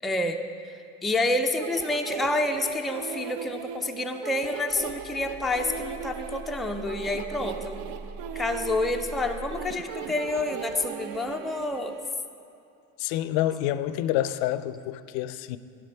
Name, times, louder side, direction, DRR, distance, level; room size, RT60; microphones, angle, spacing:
voice 1, 0.0-7.8 8.3-12.0, left 2 dB, ahead, 4 dB, 0.4 m, -28 dB
sound 1, 1.6-12.1, right 8 dB, 50° right, 0.6 m, -38 dB
sound 2, 4.7-9.7, right 2 dB, 75° right, 2.4 m, -42 dB
voice 2, 13.0-15.6, left 13 dB, 55° left, 14 dB, 0.5 m, -28 dB
12.0 x 5.1 x 5.6 m, 2.6 s
hypercardioid pair, 70°, 43 cm